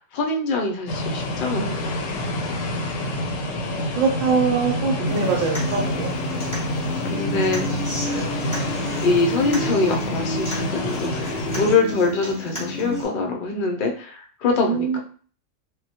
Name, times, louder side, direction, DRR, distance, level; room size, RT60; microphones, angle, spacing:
voice 1, 0.0-2.0 7.0-7.7 9.0-15.0, left 3 dB, 60° left, 2 dB, 0.6 m, -24 dB
sound 1, 0.9-11.8, left 1 dB, 85° left, 0.9 m, -27 dB
voice 2, 3.7-6.6 14.5-15.0, right 5 dB, 85° right, 1 dB, 1.0 m, -24 dB
Human voice / Acoustic guitar, 5.1-13.0, equal, 15° left, 0.8 m, -31 dB
2.2 x 2.1 x 2.7 m, 0.43 s
omnidirectional pair, 1.3 m